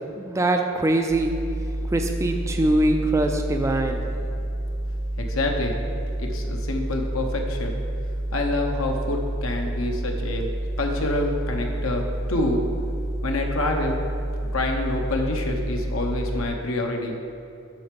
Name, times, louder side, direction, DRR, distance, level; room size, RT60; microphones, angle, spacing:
voice 1, 0.2-1.3 1.9-4.0, right 1 dB, 15° right, 4 dB, 0.4 m, -22 dB
sound 1, 1.1-16.4, right 1 dB, 60° right, 0.9 m, -29 dB
voice 2, 5.2-5.7 6.2-7.8 8.3-10.5 10.8-12.6 13.2-14.0 14.5-17.1, left 2 dB, 70° left, 2 dB, 0.9 m, -27 dB
7.8 x 5.6 x 5.2 m, 2.7 s
head